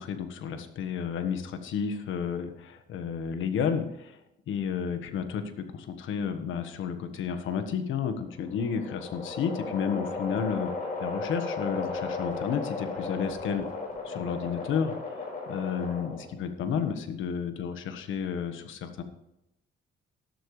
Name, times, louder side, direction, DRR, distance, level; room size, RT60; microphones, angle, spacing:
voice 1, 0.0-4.2 4.5-10.7 11.0-13.7 14.0-14.9 15.5-19.0, left 7 dB, 80° left, 8 dB, 1.4 m, -31 dB
sound 1, 8.1-16.4, left 3 dB, 45° left, 4.8 m, -35 dB
12.0 x 12.0 x 3.3 m, 0.86 s
cardioid pair, 90°, 20 cm